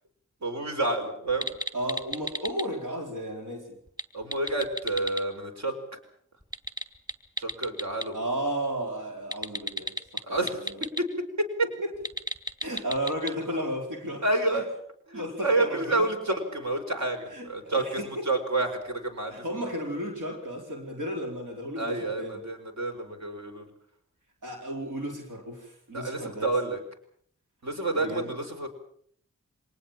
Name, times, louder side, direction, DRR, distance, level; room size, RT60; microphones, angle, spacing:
voice 1, 0.4-1.5 4.1-5.8 7.4-8.2 10.2-11.1 11.4-11.7 14.2-14.6 15.1-19.4 21.8-23.7 25.9-26.8 27.6-28.7, right 2 dB, 65° right, 5 dB, 5.1 m, -29 dB
sound 1, 1.3-2.6 3.9-5.2 6.4-8.1 9.3-11.0 11.9-13.3, left 1 dB, 15° right, 2.7 m, -34 dB
voice 2, 1.7-3.8 8.1-10.8 12.6-14.2 14.5-14.6 15.1-16.1 17.3-18.2 19.3-22.4 24.4-26.7 28.0-28.3, equal, 85° right, 2 dB, 4.7 m, -34 dB
25.0 x 19.5 x 7.4 m, 0.62 s
cardioid pair, 60°, 31 cm